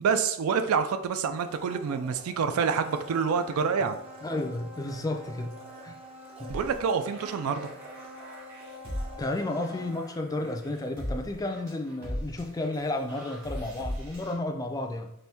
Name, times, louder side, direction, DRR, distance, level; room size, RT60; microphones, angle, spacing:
voice 1, 0.0-4.0 6.5-7.7, right 6 dB, 70° right, 9 dB, 0.3 m, -27 dB
Domestic sounds home sounds, 1.3-11.3 11.6-11.7, left 1 dB, 25° right, 0.6 m, -46 dB
voice 2, 4.2-6.0 6.4-6.5 9.2-15.1, left 2 dB, 15° left, 4 dB, 0.3 m, -32 dB
sound 1, 6.5-14.3, equal, 50° right, 1.5 m, -39 dB
4.2 x 2.6 x 3.4 m, 0.78 s
head